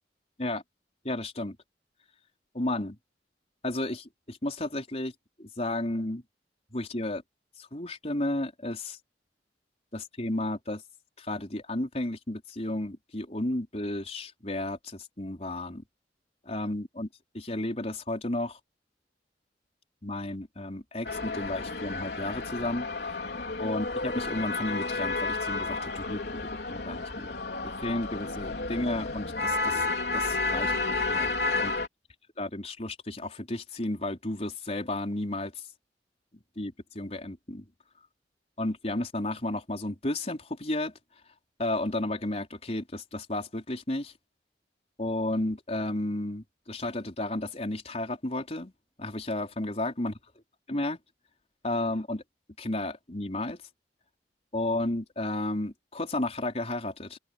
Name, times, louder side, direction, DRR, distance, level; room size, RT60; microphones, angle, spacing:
voice 1, 1.0-1.6 2.5-3.0 3.6-5.1 5.4-6.2 6.7-7.2 7.6-9.0 9.9-10.8 11.2-15.8 16.5-17.1 17.3-18.6 20.0-23.2 23.6-27.3 27.6-29.8 30.1-31.3 31.6-31.7 32.4-35.5 36.6-37.6 38.6-40.9 41.6-44.1 45.0-48.7 49.0-50.1 50.7-51.0 51.6-52.2 52.6-53.6 54.5-57.2, left 1 dB, 35° left, 4.4 m, -33 dB
sound 1, 21.0-31.9, left 3 dB, 65° left, 4.1 m, -31 dB
open air
head